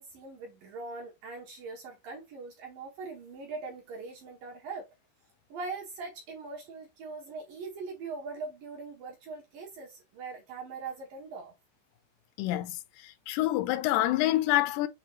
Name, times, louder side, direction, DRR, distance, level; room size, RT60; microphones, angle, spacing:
voice 1, 0.0-4.9 5.5-11.5, right 4 dB, 70° right, 2.2 m, -41 dB
voice 2, 12.4-12.7 13.3-14.9, left 15 dB, 80° left, 2.6 m, -26 dB
7.2 x 2.5 x 2.9 m
omnidirectional pair, 5.2 m